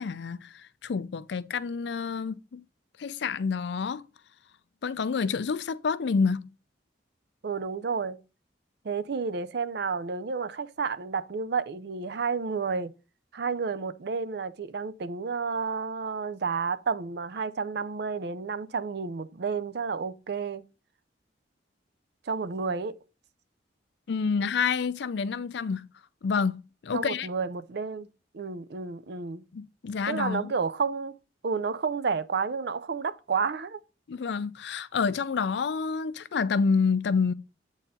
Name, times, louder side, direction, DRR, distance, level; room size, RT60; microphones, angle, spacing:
voice 1, 0.0-2.6 3.0-4.0 4.8-6.5 24.1-25.9 26.2-27.3 29.5-30.5 34.1-37.3, left 5 dB, 65° left, 0.4 m, -28 dB
voice 2, 7.4-8.2 8.8-12.9 13.3-20.6 22.3-23.0 26.9-28.1 28.3-29.4 30.1-31.2 31.4-33.8, right 5 dB, 60° right, 0.5 m, -31 dB
8.1 x 4.2 x 3.6 m
head